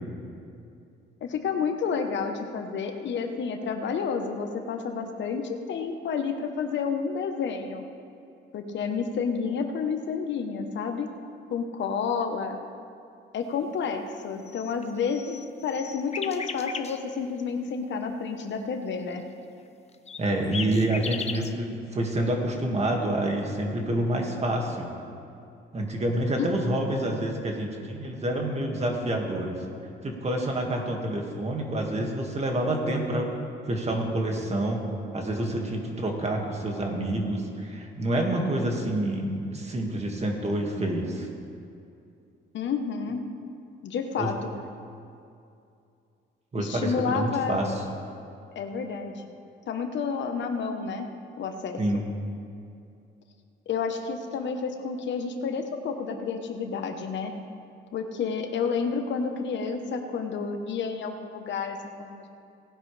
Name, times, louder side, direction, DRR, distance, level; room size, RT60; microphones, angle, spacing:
voice 1, 1.2-7.8 8.5-11.1 11.5-12.6 13.3-19.2 26.4-26.5 42.5-43.2 43.8-44.3 46.6-47.6 48.5-49.3 49.7-51.1 51.4-52.0 53.7-57.3 57.9-62.4, left 5 dB, 65° left, 5 dB, 1.1 m, -30 dB
sound 1, 14.4-17.0 20.1-21.5, left 5 dB, 35° left, 0.7 m, -36 dB
voice 2, 20.2-24.9 25.7-29.6 30.0-33.3 33.7-34.8 35.1-41.3 44.2-44.3 46.5-47.8 51.8-52.1, right 1 dB, 35° right, 1 dB, 2.1 m, -28 dB
18.5 x 10.5 x 3.4 m, 2.6 s
cardioid pair, 90°, 20 cm